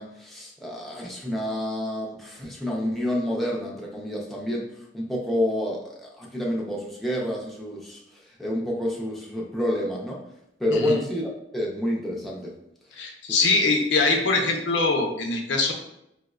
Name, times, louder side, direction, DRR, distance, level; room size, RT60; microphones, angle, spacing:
voice 1, 0.0-10.2 10.6-12.6 13.3-13.4, left 1 dB, ahead, -4 dB, 0.4 m, -29 dB
voice 2, 10.7-11.0 13.0-15.7, left 3 dB, 75° left, 2 dB, 0.5 m, -23 dB
4.4 x 2.0 x 2.3 m, 0.80 s
head